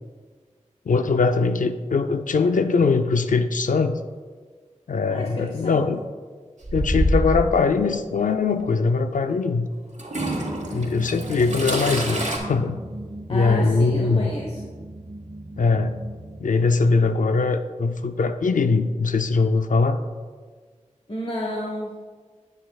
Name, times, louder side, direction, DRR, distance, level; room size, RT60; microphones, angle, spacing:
voice 1, 0.9-4.0 4.9-6.0 6.7-9.7 10.7-12.8 13.3-14.3 15.6-16.0 16.4-20.0, left 4 dB, 90° left, 8 dB, 0.4 m, -21 dB
voice 2, 5.1-5.8 13.3-14.7 21.1-21.9, equal, 50° left, -2 dB, 1.1 m, -31 dB
Toilet flush / Trickle dribble, 6.6-7.5 8.6-8.7 10.0-12.4, right 1 dB, 65° right, 1.4 m, -26 dB
sound 1, 10.2-16.4, right 1 dB, 50° right, 1.4 m, -37 dB
10.0 x 8.2 x 2.3 m, 1.5 s
wide cardioid pair, 50°, 13 cm